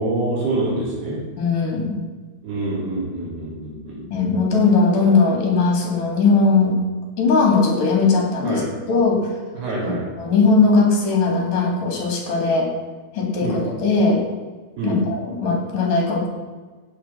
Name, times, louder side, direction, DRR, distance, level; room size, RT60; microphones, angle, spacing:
voice 1, 0.0-1.2 2.4-4.0 8.4-8.7 9.5-10.0 13.4-13.6 14.8-15.0, right 2 dB, 85° right, -10 dB, 5.5 m, -25 dB
voice 2, 1.4-1.9 4.1-6.8 7.2-8.6 8.9-9.3 9.8-12.7 13.1-14.2 14.8-16.3, left 4 dB, 55° left, 1 dB, 4.7 m, -19 dB
15.5 x 8.8 x 6.1 m, 1.4 s
omnidirectional pair, 4.5 m